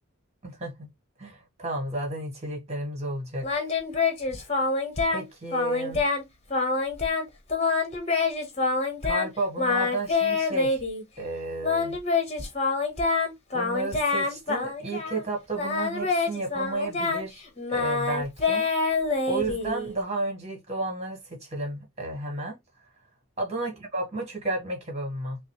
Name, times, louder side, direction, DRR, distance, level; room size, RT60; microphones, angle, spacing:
voice 1, 0.4-0.9 1.2-3.4 5.1-6.0 9.0-10.8 11.2-12.0 13.5-17.4 17.7-18.7 19.3-22.5 23.4-25.4, right 2 dB, 30° right, 1.5 m, -32 dB
Singing, 3.4-5.2 5.5-6.2 6.5-7.2 7.5-9.3 9.6-11.0 11.6-15.2 15.5-20.0, left 3 dB, 30° left, 1.1 m, -26 dB
5.9 x 2.0 x 3.1 m
head